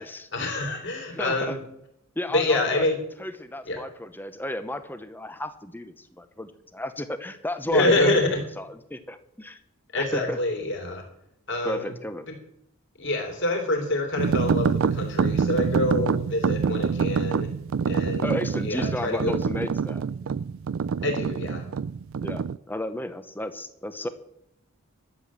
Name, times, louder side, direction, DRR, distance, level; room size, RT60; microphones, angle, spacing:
voice 1, 0.3-1.6 2.3-3.0 3.7-3.8 7.7-8.4 9.9-11.0 11.5-11.9 13.0-17.5 17.8-18.3 18.6-19.4 21.0-21.6, left 2 dB, 55° left, 3 dB, 3.4 m, -26 dB
voice 2, 1.1-1.6 2.2-2.9 3.2-9.6 9.9-10.4 11.6-12.3 18.2-20.0 22.2-24.1, left 1 dB, 10° left, 11 dB, 0.8 m, -33 dB
sound 1, 14.2-22.6, right 6 dB, 60° right, 0.4 m, -26 dB
12.0 x 7.6 x 7.5 m, 0.77 s
head